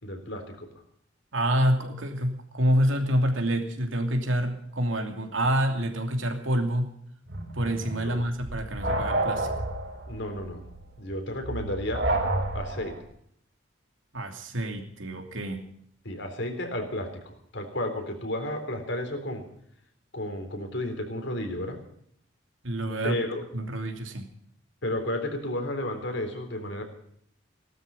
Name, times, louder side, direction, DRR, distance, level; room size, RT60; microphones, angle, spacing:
voice 1, 0.0-0.7 7.9-8.3 10.1-10.6 11.0-12.1 12.5-13.1 16.0-19.5 20.1-21.8 23.0-23.4 24.8-26.8, left 1 dB, 65° left, 5 dB, 3.8 m, -32 dB
voice 2, 1.3-6.9 7.5-9.5 14.1-15.7 22.6-23.2 23.5-24.3, equal, 80° right, 5 dB, 2.8 m, -27 dB
sound 1, 7.3-13.0, right 2 dB, 60° right, 3.9 m, -30 dB
18.0 x 12.5 x 5.5 m, 0.67 s
head